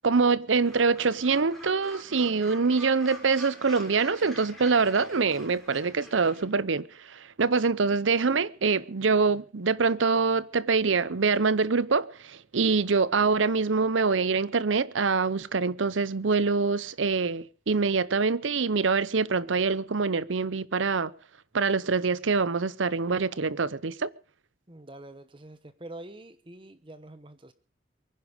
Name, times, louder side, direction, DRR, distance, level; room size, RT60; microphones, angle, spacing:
voice 1, 0.0-21.1 21.5-24.1, right 4 dB, 85° right, 0.7 m, -25 dB
Gull seagull, 0.6-6.4, left 1 dB, ahead, 3.7 m, -46 dB
voice 2, 24.7-27.5, right 1 dB, 25° right, 1.1 m, -45 dB
23.5 x 10.5 x 5.1 m
head